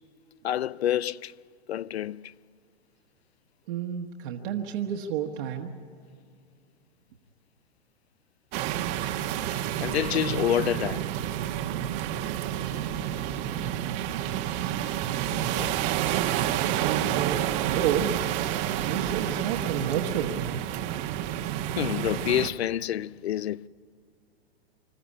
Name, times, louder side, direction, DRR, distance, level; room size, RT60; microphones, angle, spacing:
voice 1, 0.4-1.4 1.7-2.3 9.8-11.1 15.5-15.7 21.8-23.7, left 11 dB, 80° left, 0.5 m, -28 dB
voice 2, 3.7-5.7 14.8-15.6 16.8-18.3 18.9-20.4, right 8 dB, 55° right, 1.5 m, -31 dB
sound 1, 8.5-22.5, right 11 dB, 35° right, 1.1 m, -29 dB
sound 2, 12.7-18.2, left 4 dB, 20° left, 1.6 m, -50 dB
26.5 x 13.5 x 9.9 m
hypercardioid pair, 120°, 31 cm